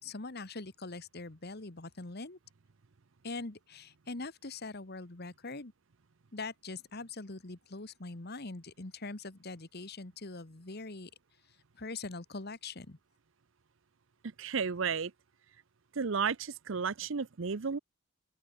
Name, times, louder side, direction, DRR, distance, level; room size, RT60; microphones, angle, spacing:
voice 1, 0.0-2.4 3.2-5.7 6.3-11.1 11.7-13.0, left 3 dB, 50° left, 1.6 m, -42 dB
voice 2, 14.4-15.1 15.9-17.8, right 5 dB, 65° right, 0.7 m, -33 dB
open air
head